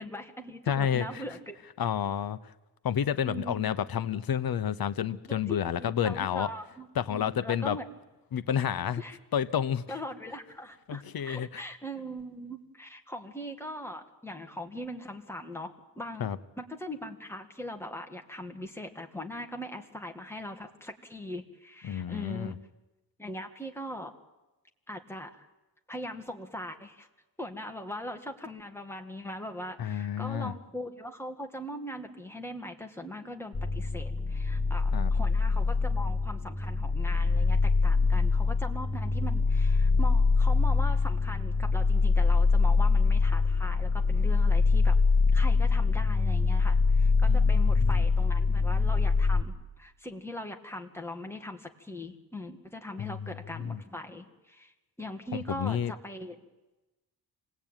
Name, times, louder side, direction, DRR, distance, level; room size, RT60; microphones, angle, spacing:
voice 1, 0.0-1.6 3.2-3.8 5.3-7.8 9.0-9.2 9.9-16.3 16.6-22.5 23.2-24.2 24.9-25.5 25.9-27.1 27.4-45.0 45.3-56.4, equal, 5° left, 4 dB, 1.8 m, -40 dB
voice 2, 0.7-1.2 1.8-2.5 2.8-6.5 6.9-7.8 8.3-9.0 9.3-9.8 10.9-11.6 16.2-16.4 21.8-22.6 29.8-30.5 34.9-35.1 47.3-48.0 53.0-53.8 55.3-55.9, left 9 dB, 60° left, 13 dB, 0.9 m, -30 dB
sound 1, 33.5-49.4, left 4 dB, 25° left, 1.4 m, -24 dB
27.0 x 19.5 x 9.0 m, 1.1 s
wide cardioid pair, 155°, 41 cm